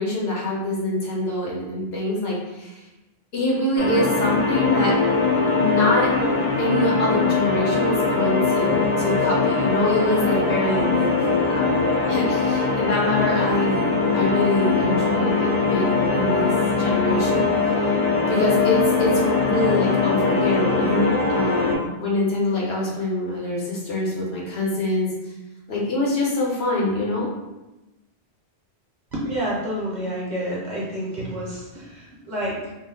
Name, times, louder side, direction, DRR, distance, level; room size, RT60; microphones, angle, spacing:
voice 1, 0.0-2.8 3.3-5.0 5.5-6.1 6.6-16.5 16.8-17.4 18.3-25.1 25.7-27.3, left 1 dB, 70° left, -4 dB, 1.0 m, -25 dB
sound 1, 3.8-21.8, left 4 dB, 45° left, 0.6 m, -21 dB
voice 2, 29.1-32.7, equal, 50° right, -5 dB, 0.7 m, -29 dB
2.5 x 2.1 x 3.6 m, 1.0 s
omnidirectional pair, 1.1 m